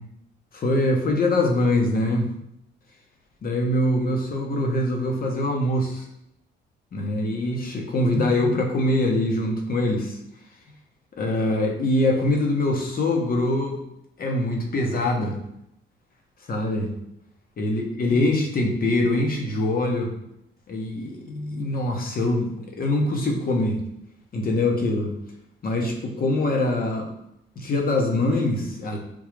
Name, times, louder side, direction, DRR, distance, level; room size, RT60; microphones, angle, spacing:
voice 1, 0.5-2.3 3.4-6.1 6.9-10.2 11.2-13.8 14.2-15.4 16.5-16.9 17.6-20.1 20.7-23.8 24.3-25.1 25.6-27.1 27.6-29.0, left 1 dB, 45° left, 1 dB, 0.9 m, -23 dB
3.6 x 2.3 x 3.2 m, 0.79 s
cardioid pair, 90°, 20 cm